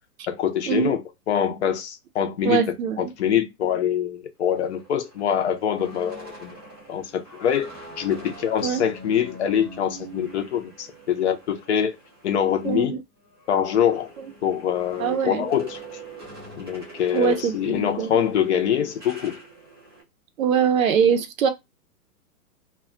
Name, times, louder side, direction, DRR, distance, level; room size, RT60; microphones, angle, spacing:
voice 1, 0.3-2.6 3.0-6.6 6.9-7.7 8.0-12.0 12.2-13.0 13.5-14.1 14.4-15.8 16.6-19.4, left 9 dB, 45° left, 0.6 m, -24 dB
voice 2, 2.4-3.0 8.6-8.8 12.6-13.0 15.0-15.4 17.1-18.1 20.4-21.5, right 7 dB, 60° right, 0.6 m, -22 dB
sound 1, 4.4-12.8 13.2-20.0, right 2 dB, 20° right, 0.3 m, -44 dB
2.2 x 2.2 x 3.6 m
hypercardioid pair, 140°, 47 cm